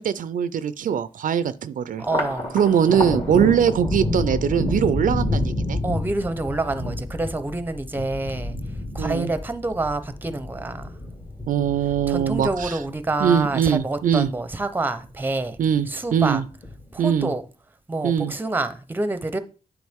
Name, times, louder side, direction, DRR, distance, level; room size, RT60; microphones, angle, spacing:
voice 1, 0.0-2.1 2.5-5.8 9.0-9.3 11.5-12.8 13.2-14.3 15.6-16.4 17.0-17.3 18.0-18.3, right 8 dB, 75° right, 0.4 m, -22 dB
Thunder, 2.0-14.6 15.0-15.8 16.2-17.0, left 1 dB, 40° left, 2.2 m, -29 dB
voice 2, 2.0-2.5 5.8-8.6 8.9-11.0 12.1-15.6 15.9-16.4 16.9-17.4 17.9-19.4, right 2 dB, 15° right, 0.6 m, -27 dB
9.3 x 4.9 x 3.5 m
wide cardioid pair, 130°, 14 cm